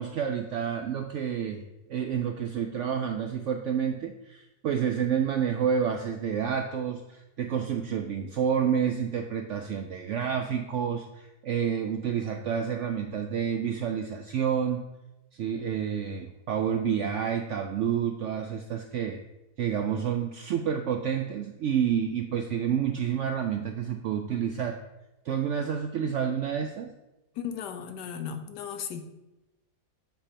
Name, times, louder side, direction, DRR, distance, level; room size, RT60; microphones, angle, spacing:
voice 1, 0.0-1.6 1.9-14.8 15.3-19.2 19.6-24.8 25.3-26.9, right 8 dB, 75° right, 5 dB, 0.6 m, -29 dB
voice 2, 27.3-29.0, left 8 dB, 90° left, 8 dB, 1.3 m, -36 dB
8.1 x 3.4 x 5.4 m, 0.97 s
omnidirectional pair, 1.7 m